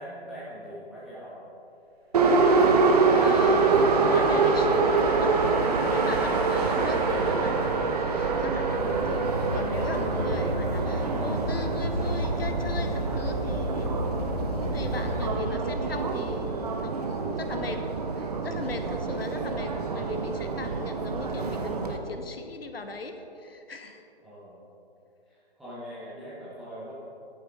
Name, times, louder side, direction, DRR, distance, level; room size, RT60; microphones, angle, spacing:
voice 1, 0.0-1.4 19.1-19.3 24.2-24.6 25.3-26.9, equal, ahead, -13 dB, 0.5 m, -42 dB
Subway metro underground, 2.1-22.0, right 4 dB, 40° right, 0.9 m, -25 dB
sound 1, 2.8-9.5, right 2 dB, 75° right, 1.3 m, -39 dB
voice 2, 3.1-24.0, left 3 dB, 65° left, 6 dB, 1.0 m, -38 dB
sound 2, 8.7-15.3, left 1 dB, 40° left, 1.5 m, -32 dB
11.0 x 9.1 x 3.5 m, 2.8 s
figure-of-eight pair, 140°, 32 cm